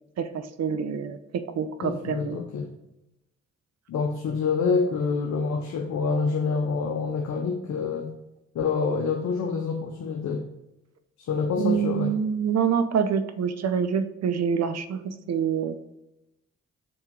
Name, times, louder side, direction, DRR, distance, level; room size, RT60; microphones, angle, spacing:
voice 1, 0.2-2.4 11.6-15.8, right 7 dB, 55° right, 11 dB, 0.7 m, -26 dB
voice 2, 1.8-2.7 3.9-8.1 8.5-10.4 11.2-12.1, left 5 dB, 55° left, 3 dB, 0.8 m, -27 dB
6.3 x 4.5 x 3.8 m, 0.92 s
hypercardioid pair, 40°, 33 cm